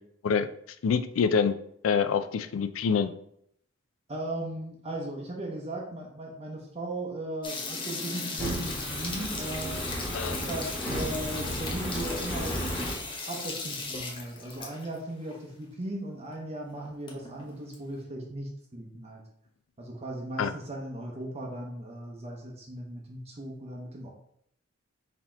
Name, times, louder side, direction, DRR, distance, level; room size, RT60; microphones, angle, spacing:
voice 1, 0.8-1.6 1.8-3.1 10.1-10.4 20.4-20.5, left 6 dB, 80° left, 11 dB, 0.4 m, -25 dB
voice 2, 4.1-9.8 10.3-12.6 13.3-19.2 19.8-24.1, right 1 dB, 30° right, -1 dB, 0.7 m, -37 dB
sound 1, 7.4-15.0 15.3-15.4 15.6-15.7 16.3-16.4 16.7-17.7, left 3 dB, 25° left, 0.8 m, -38 dB
Fire, 8.4-13.0, equal, 10° left, 1.1 m, -34 dB
4.1 x 2.8 x 4.3 m, 0.71 s
head